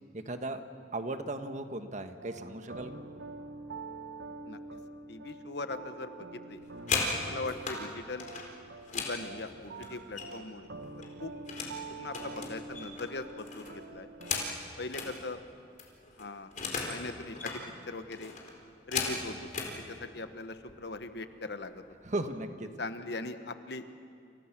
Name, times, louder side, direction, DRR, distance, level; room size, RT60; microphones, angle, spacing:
voice 1, 0.1-0.6 0.9-3.0 22.0-22.7, right 2 dB, 45° right, 7 dB, 1.4 m, -36 dB
sound 1, 2.2-14.5, right 3 dB, 75° right, 1.4 m, -46 dB
voice 2, 4.5-4.8 5.1-6.1 6.5-6.6 7.2-8.3 8.9-10.7 11.2-11.3 12.0-14.1 14.8-15.4 16.2-16.5 16.8-17.6 17.9-18.3 18.9-19.4 20.0-21.7 22.8-23.8, left 3 dB, 65° left, 9 dB, 1.4 m, -40 dB
sound 2, 6.5-7.8 8.2-10.5 10.8-11.8 12.1-15.1 15.5-15.6 15.8-17.0 17.3-17.6 18.1-19.7 20.6-20.7 21.1-21.4 21.7-22.2, left 4 dB, 45° left, 4.5 m, -36 dB
29.0 x 28.5 x 6.1 m, 2.4 s
head